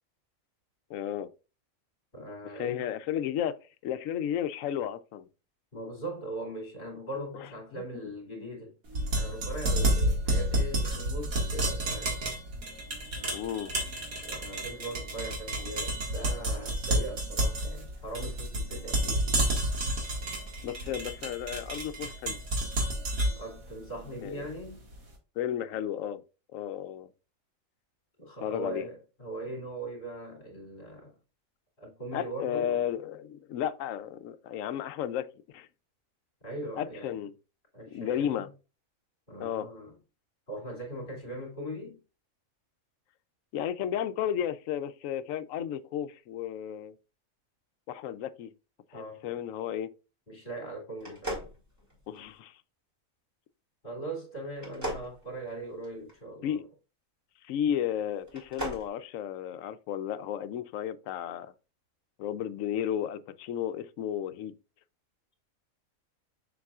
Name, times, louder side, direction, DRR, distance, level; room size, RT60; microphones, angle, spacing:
voice 1, 0.9-1.3 2.5-3.6 3.8-5.3 7.7-8.1 8.4-8.5 13.2-13.7 20.6-22.4 24.2-24.5 25.4-26.2 26.5-27.1 28.4-28.9 32.1-35.3 35.5-35.7 36.8-37.3 37.9-38.5 39.4-39.7 43.5-46.9 47.9-48.5 48.9-49.9 52.1-52.6 56.4-56.6 57.4-61.5 62.2-64.5, left 10 dB, 75° left, 0.9 m, -33 dB
voice 2, 2.1-2.9 5.7-8.8 9.1-12.2 14.2-19.3 23.4-24.8 28.2-31.1 31.8-32.9 36.4-37.2 37.7-38.5 39.3-39.9 40.5-42.0 48.9-49.4 50.3-51.4 53.8-56.6, right 1 dB, 35° left, 2.6 m, -40 dB
sound 1, 8.9-24.9, right 1 dB, 85° right, 2.2 m, -30 dB
sound 2, 51.0-52.4 54.6-56.1 58.2-58.9, right 1 dB, 10° right, 2.5 m, -38 dB
7.1 x 6.1 x 2.4 m
omnidirectional pair, 1.4 m